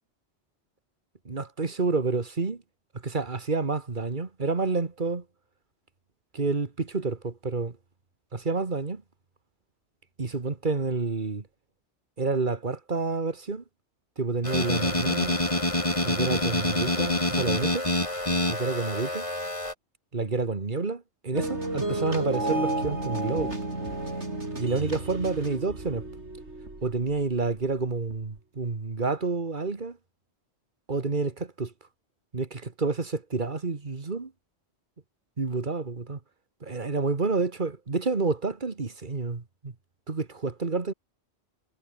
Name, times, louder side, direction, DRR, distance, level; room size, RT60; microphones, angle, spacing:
voice 1, 1.3-2.6 3.0-5.2 6.3-7.7 8.3-9.0 10.2-11.5 12.2-13.6 14.2-15.4 16.0-17.9 18.5-19.3 20.1-23.5 24.6-26.1 26.8-30.0 30.9-31.7 32.3-34.3 35.4-36.2 36.6-39.7 40.1-40.9, right 4 dB, 45° right, 2.0 m, -29 dB
sound 1, 14.4-19.7, left 1 dB, 30° left, 3.8 m, -27 dB
sound 2, 21.3-27.5 28.1-28.2, right 2 dB, 85° right, 5.8 m, -32 dB
omnidirectional pair, 1.2 m